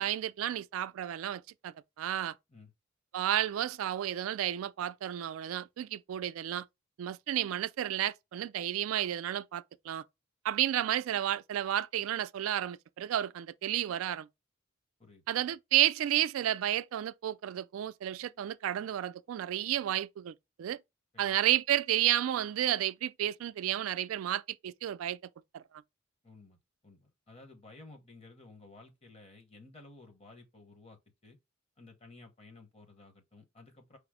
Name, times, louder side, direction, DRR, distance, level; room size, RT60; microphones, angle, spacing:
voice 1, 0.0-2.4 3.1-6.7 7.0-10.0 10.4-14.3 15.3-20.8 21.2-25.2 25.5-25.6, right 12 dB, 85° right, 0.3 m, -31 dB
voice 2, 26.2-26.6 26.8-31.4 31.8-34.0, left 3 dB, 30° left, 1.0 m, -54 dB
4.8 x 2.0 x 4.7 m
head